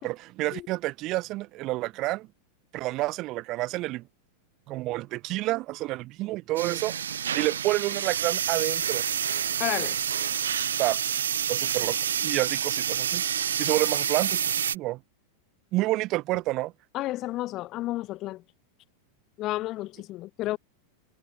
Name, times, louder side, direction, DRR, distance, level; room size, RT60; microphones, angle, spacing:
voice 1, 0.0-2.3 2.7-4.0 4.7-7.0 7.3-9.0 10.8-11.2 11.5-12.0 12.2-13.2 13.6-14.4 14.7-15.0 15.7-16.7, right 19 dB, 40° right, 4.8 m, -29 dB
sound 1, 6.6-14.8, right 8 dB, 65° right, 6.3 m, -28 dB
voice 2, 9.6-10.0 16.9-18.4 19.4-20.6, left 16 dB, 35° left, 2.4 m, -31 dB
figure-of-eight pair, 90°, 0 cm